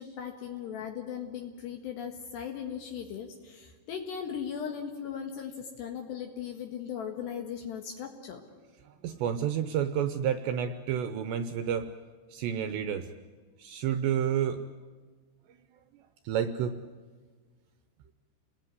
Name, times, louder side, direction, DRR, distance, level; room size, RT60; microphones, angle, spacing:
voice 1, 0.0-8.4, left 8 dB, 65° left, 3 dB, 3.5 m, -38 dB
voice 2, 8.8-11.9 12.3-13.1 13.6-14.6 16.2-16.8, right 9 dB, 75° right, 9 dB, 2.8 m, -30 dB
30.0 x 20.0 x 9.7 m, 1.5 s
omnidirectional pair, 5.7 m